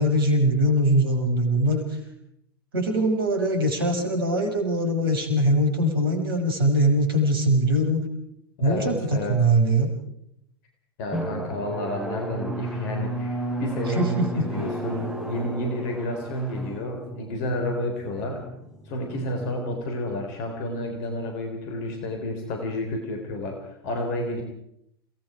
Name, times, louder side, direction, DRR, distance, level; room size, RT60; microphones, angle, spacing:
voice 1, 0.0-2.0 2.7-8.0 8.6-9.9 14.0-14.5, right 1 dB, 65° right, 4 dB, 5.7 m, -22 dB
voice 2, 8.6-9.4 11.0-18.5 18.9-24.4, left 1 dB, 45° left, 4 dB, 3.7 m, -30 dB
Drum, 11.1-20.4, right 1 dB, 5° right, 6.0 m, -34 dB
29.0 x 18.5 x 4.9 m, 0.74 s
figure-of-eight pair, 90°, 13 cm